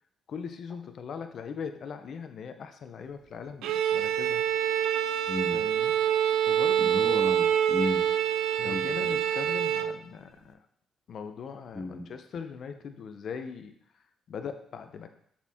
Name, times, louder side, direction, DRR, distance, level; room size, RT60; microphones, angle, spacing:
voice 1, 0.3-4.4 5.5-6.1 6.5-7.0 8.6-10.6 11.1-15.1, left 6 dB, 60° left, 8 dB, 0.6 m, -40 dB
Bowed string instrument, 3.6-10.0, right 9 dB, 85° right, 0.4 m, -26 dB
voice 2, 5.3-5.6 6.8-8.1 8.6-9.2 11.7-12.1, left 2 dB, 25° left, -4 dB, 1.2 m, -34 dB
6.9 x 4.3 x 3.5 m, 0.68 s
cardioid pair, 90°, 0 cm